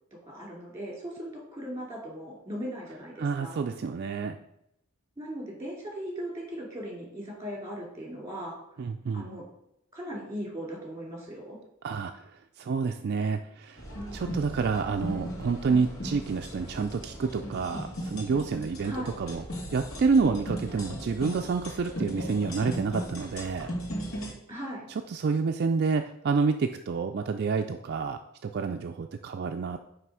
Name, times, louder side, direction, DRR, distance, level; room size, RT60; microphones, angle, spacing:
voice 1, 0.3-3.6 5.2-8.6 9.1-9.4 9.9-11.6 18.8-19.2 24.5-24.9, equal, 15° right, -2 dB, 2.5 m, -38 dB
voice 2, 3.2-4.4 8.8-9.3 11.8-12.3 12.6-13.8 14.1-19.4 19.7-23.7 24.9-29.8, right 5 dB, 50° right, 5 dB, 0.4 m, -28 dB
sound 1, 13.8-24.3, equal, 75° left, 1.8 m, -37 dB
9.3 x 3.3 x 4.8 m, 0.79 s
head